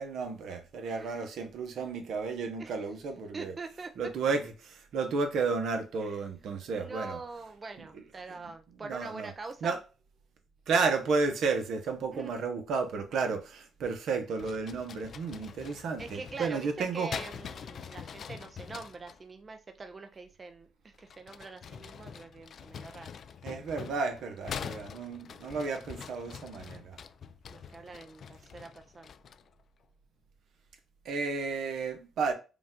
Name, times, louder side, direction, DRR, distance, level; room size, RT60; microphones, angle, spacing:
voice 1, 0.0-3.5 4.0-7.2 8.8-9.3 9.6-9.8 10.7-17.1 23.4-27.0 31.0-32.3, right 4 dB, 75° right, 0.9 m, -32 dB
voice 2, 0.8-1.2 2.6-2.7 3.3-3.9 6.0-6.2 6.7-9.8 12.1-12.3 15.7-23.1 27.5-29.1, right 3 dB, 30° right, 0.5 m, -44 dB
sound 1, 14.4-19.2 20.9-29.5, left 7 dB, 55° left, 0.3 m, -44 dB
5.0 x 2.5 x 3.7 m
cardioid pair, 90°, 0 cm